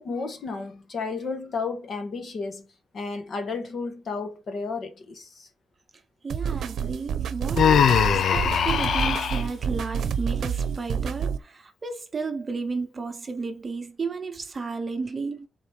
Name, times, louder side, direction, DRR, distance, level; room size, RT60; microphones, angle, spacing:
voice 1, 0.0-2.7 2.9-5.5, left 4 dB, 50° left, 1.3 m, -32 dB
voice 2, 6.2-15.5, right 4 dB, 30° right, 0.8 m, -33 dB
sound 1, 6.3-11.4, right 7 dB, 85° right, 0.7 m, -28 dB
Human voice, 7.6-9.4, left 8 dB, 65° left, 0.5 m, -21 dB
6.8 x 4.0 x 4.6 m
wide cardioid pair, 180°, 0 cm